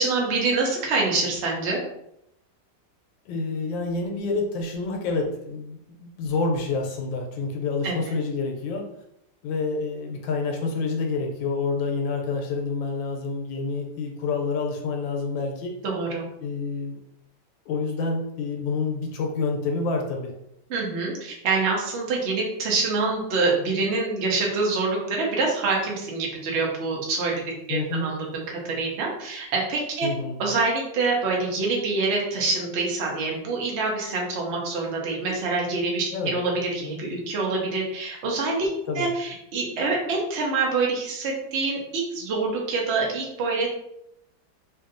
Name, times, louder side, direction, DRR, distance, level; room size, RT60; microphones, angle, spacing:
voice 1, 0.0-1.8 7.8-7.9 15.8-16.2 20.7-27.3 27.7-30.1 30.4-38.7 38.9-43.7, right 3 dB, 75° right, -1 dB, 0.6 m, -26 dB
voice 2, 3.3-8.9 9.4-15.7 16.4-17.0 17.7-20.3 27.7-28.1 30.0-30.4 36.1-36.4 38.9-39.1, left 4 dB, 85° left, 2 dB, 1.3 m, -28 dB
2.9 x 2.6 x 2.5 m, 0.78 s
omnidirectional pair, 2.0 m